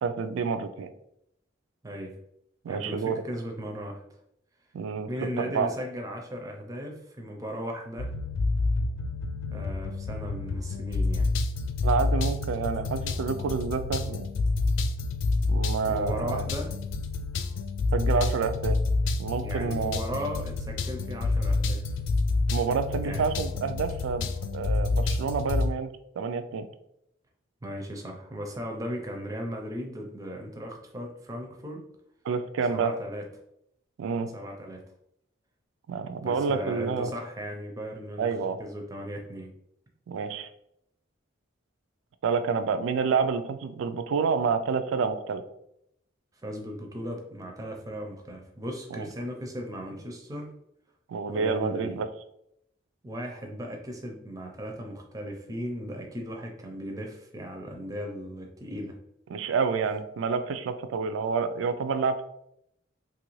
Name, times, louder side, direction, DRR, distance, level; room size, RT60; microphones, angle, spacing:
voice 1, 0.0-0.9 2.6-3.2 4.7-5.1 5.4-5.7 11.8-14.3 15.5-16.4 17.9-18.8 19.2-20.0 22.5-25.9 26.2-26.7 32.2-32.9 34.0-34.3 35.9-37.1 38.2-38.6 40.1-40.5 42.2-45.4 48.9-49.1 51.1-52.1 59.3-62.2, right 5 dB, 85° right, 10 dB, 0.3 m, -28 dB
voice 2, 1.8-2.2 2.6-4.0 5.1-8.1 9.5-11.3 15.9-16.7 19.4-21.9 23.0-23.3 27.6-31.8 32.7-33.3 34.3-34.8 36.2-39.5 46.4-50.5 51.3-52.0 53.0-59.0, equal, 15° right, 1 dB, 0.4 m, -37 dB
sound 1, 8.0-25.7, left 3 dB, 80° left, 0.3 m, -28 dB
2.9 x 2.5 x 3.0 m, 0.77 s
head